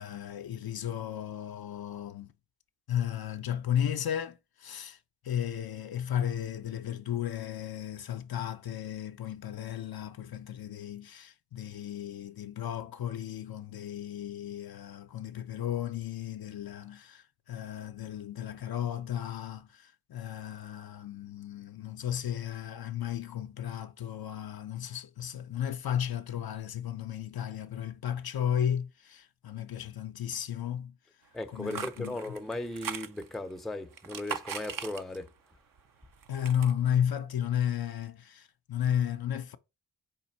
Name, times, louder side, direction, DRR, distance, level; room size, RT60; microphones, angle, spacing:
voice 1, 0.0-2.3 2.9-5.0 5.2-30.9 31.5-32.2 36.3-39.6, left 10 dB, 55° left, 0.5 m, -34 dB
voice 2, 31.3-35.3, left 1 dB, ahead, 0.5 m, -37 dB
sound 1, 31.4-33.5 33.9-35.4 35.8-36.7, right 7 dB, 50° right, 0.6 m, -40 dB
5.1 x 2.5 x 4.1 m
cardioid pair, 50°, 45 cm